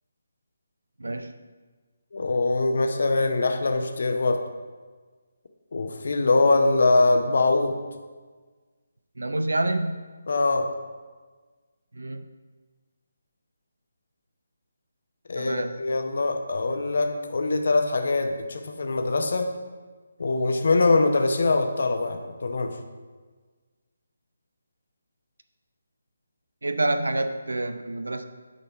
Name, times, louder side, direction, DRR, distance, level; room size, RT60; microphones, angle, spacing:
voice 1, 1.0-1.3 9.2-10.0 11.9-12.2 15.4-15.7 26.6-28.3, right 2 dB, 65° right, 9 dB, 0.5 m, -27 dB
voice 2, 2.1-4.4 5.7-7.8 10.3-10.7 15.3-19.5 20.2-22.8, left 3 dB, 55° left, 5 dB, 0.8 m, -23 dB
9.9 x 4.3 x 5.0 m, 1.4 s
figure-of-eight pair, 150°, 0 cm